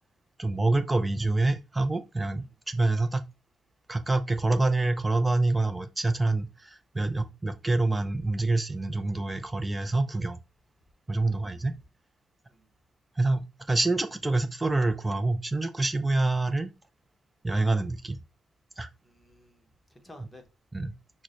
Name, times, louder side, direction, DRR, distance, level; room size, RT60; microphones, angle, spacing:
voice 1, 0.4-3.2 3.9-10.4 11.1-11.8 13.2-16.7 17.4-18.2 18.8-18.9 20.7-20.9, right 2 dB, 15° right, 0.4 m, -26 dB
voice 2, 11.1-11.6 12.5-12.7 19.0-20.4, left 1 dB, 10° left, 0.9 m, -54 dB
5.9 x 2.1 x 2.5 m
cardioid pair, 95°, 0 cm